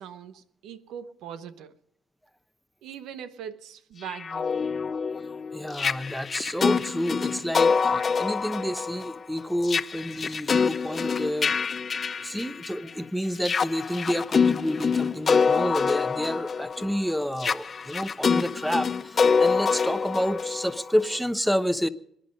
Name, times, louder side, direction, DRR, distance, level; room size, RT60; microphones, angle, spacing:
voice 1, 0.0-1.8 2.8-4.6, right 8 dB, 90° right, 0.9 m, -41 dB
sound 1, 4.0-12.9 13.3-21.2, left 5 dB, 40° left, 0.6 m, -26 dB
voice 2, 5.5-11.5 12.2-21.9, equal, ahead, 0.9 m, -29 dB
25.5 x 10.0 x 5.2 m
cardioid pair, 90°, 0 cm